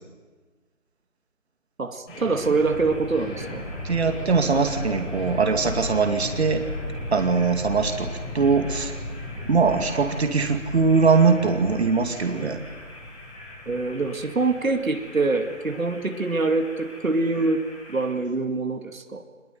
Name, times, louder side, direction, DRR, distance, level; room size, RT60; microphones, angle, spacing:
voice 1, 1.8-3.6 13.7-19.2, right 3 dB, 80° right, 6 dB, 2.5 m, -25 dB
sound 1, 2.1-18.1, left 1 dB, 10° left, 4.7 m, -36 dB
voice 2, 3.8-6.6 7.1-8.9 9.4-12.6, right 4 dB, 50° right, 6 dB, 2.4 m, -21 dB
24.5 x 21.5 x 9.5 m, 1.4 s
figure-of-eight pair, 165°, 40 cm